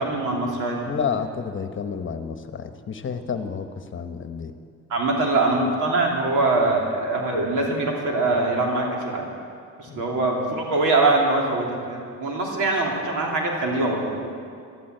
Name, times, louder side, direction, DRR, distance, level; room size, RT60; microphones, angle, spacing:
voice 1, 0.0-0.9 4.9-9.2 9.8-14.2, right 2 dB, 85° right, -1 dB, 3.0 m, -23 dB
voice 2, 0.9-3.7 3.9-4.5 9.9-10.0, left 6 dB, 40° left, 8 dB, 1.1 m, -30 dB
13.5 x 12.5 x 7.9 m, 2.3 s
cardioid pair, 90°, 30 cm